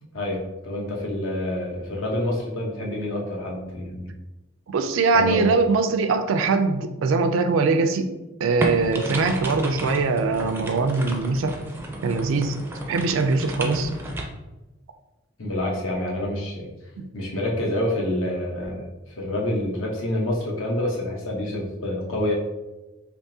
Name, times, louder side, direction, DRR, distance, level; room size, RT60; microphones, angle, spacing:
voice 1, 0.1-4.1 5.1-5.5 15.4-16.7 17.1-18.9 19.2-22.3, left 1 dB, 80° left, -1 dB, 0.9 m, -27 dB
voice 2, 4.7-8.1 8.4-11.6 12.0-12.6 12.9-13.9 17.0-17.1, right 4 dB, 80° right, 8 dB, 0.4 m, -22 dB
sound 1, 8.6-14.2, right 1 dB, 10° right, 0.4 m, -32 dB
3.5 x 2.9 x 2.7 m, 1.1 s
head